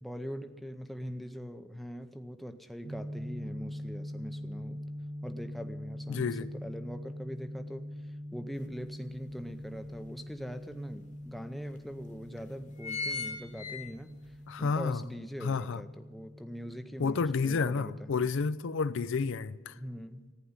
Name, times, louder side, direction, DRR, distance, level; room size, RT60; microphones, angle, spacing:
voice 1, 0.0-4.8 5.2-18.3 19.7-20.3, equal, ahead, 0.6 m, -42 dB
sound 1, 2.8-18.5, equal, 30° right, 1.0 m, -43 dB
voice 2, 6.1-6.5 14.5-15.0 15.4-15.8 17.0-19.8, left 5 dB, 55° left, 0.4 m, -30 dB
sound 2, 8.6-8.7 9.1-10.3 11.0-11.1 11.3-11.4 12.1-12.3 12.5-14.4 14.8-14.9, left 4 dB, 35° left, 1.3 m, -38 dB
14.5 x 10.0 x 9.5 m
head